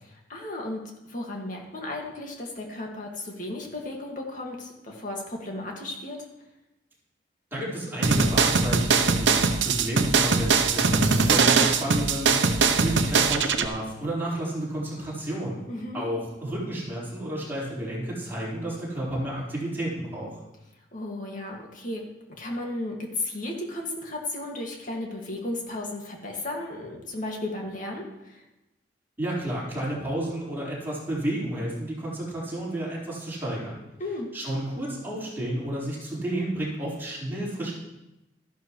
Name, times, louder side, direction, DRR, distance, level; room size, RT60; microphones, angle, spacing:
voice 1, 0.1-6.2 15.7-16.0 20.9-22.0 22.4-28.4 34.0-34.3, left 2 dB, 45° left, 0 dB, 2.1 m, -34 dB
voice 2, 7.5-15.6 15.9-20.3 29.2-33.8 34.3-37.7, right 1 dB, 10° right, -8 dB, 4.7 m, -31 dB
sound 1, 8.0-13.7, right 4 dB, 85° right, 0.8 m, -21 dB
13.5 x 11.5 x 3.2 m, 0.95 s
head